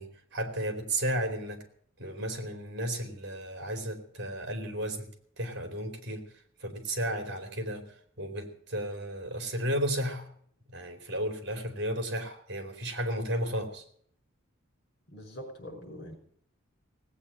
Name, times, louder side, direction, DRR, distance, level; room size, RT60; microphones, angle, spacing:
voice 1, 0.0-1.6 2.0-5.1 5.4-6.2 6.6-7.8 8.2-10.3 10.7-13.8, right 1 dB, 55° right, 6 dB, 3.2 m, -33 dB
voice 2, 15.1-16.2, equal, 50° left, 4 dB, 5.4 m, -43 dB
17.5 x 8.6 x 8.6 m, 0.63 s
head